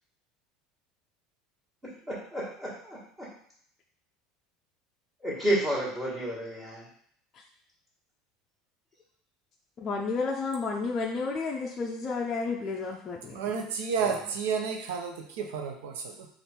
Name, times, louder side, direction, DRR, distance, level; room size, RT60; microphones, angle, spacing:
voice 1, 2.1-3.3 5.2-6.8 14.0-14.2, right 1 dB, 15° right, -9 dB, 1.5 m, -31 dB
voice 2, 9.8-13.6, left 4 dB, 30° left, -1 dB, 0.4 m, -31 dB
voice 3, 13.3-16.3, right 6 dB, 90° right, 3 dB, 0.6 m, -31 dB
3.4 x 2.5 x 4.3 m, 0.63 s
supercardioid pair, 130°, 0 cm